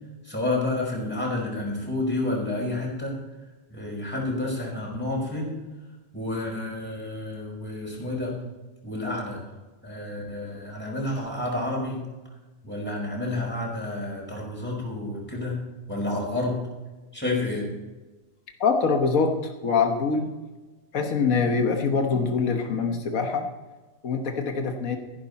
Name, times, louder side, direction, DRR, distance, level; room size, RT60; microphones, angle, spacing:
voice 1, 0.2-3.1 3.7-5.6 6.1-8.3 8.8-9.4 9.8-12.0 12.6-15.6 15.9-16.6 17.1-17.6, left 2 dB, 10° left, -3 dB, 5.1 m, -29 dB
voice 2, 18.6-20.3 20.9-23.5 24.0-25.0, left 5 dB, 90° left, 4 dB, 1.6 m, -24 dB
14.0 x 12.0 x 4.1 m, 1.2 s
omnidirectional pair, 1.4 m